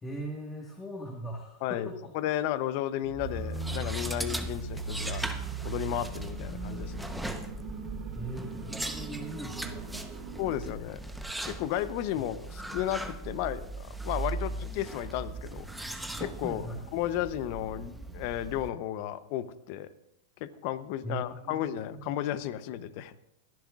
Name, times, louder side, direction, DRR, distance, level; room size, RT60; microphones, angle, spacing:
voice 1, 0.0-2.1 8.1-10.1 12.1-12.3 16.4-16.8 21.0-22.2, right 1 dB, 15° left, 0 dB, 1.6 m, -40 dB
voice 2, 2.1-5.2 5.6-7.1 10.4-11.0 11.4-15.9 16.2-16.6 16.9-19.9 20.4-23.2, left 12 dB, 55° left, 15 dB, 0.7 m, -33 dB
sound 1, 3.0-10.7, right 4 dB, 35° right, 1.8 m, -38 dB
sound 2, 3.2-18.7, right 2 dB, 5° right, 0.9 m, -39 dB
22.5 x 10.5 x 2.5 m, 0.84 s
hypercardioid pair, 110°, 0 cm